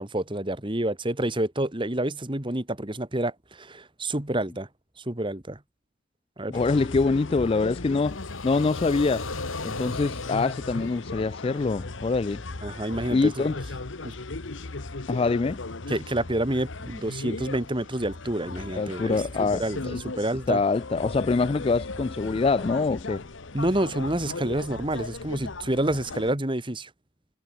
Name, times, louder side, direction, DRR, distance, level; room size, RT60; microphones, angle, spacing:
voice 1, 0.0-4.7 5.0-5.6 6.4-6.6 12.6-13.5 14.0-14.1 15.9-20.6 23.5-26.9, right 1 dB, 25° right, 1.8 m, -28 dB
sound 1, 6.5-26.3, left 3 dB, 65° left, 1.2 m, -37 dB
voice 2, 6.5-8.2 8.4-9.3 9.6-12.4 13.1-13.6 15.1-15.6 18.8-19.6 20.5-23.2, left 4 dB, 30° left, 0.3 m, -24 dB
sound 2, 7.7-11.8, left 3 dB, 85° left, 4.9 m, -37 dB
head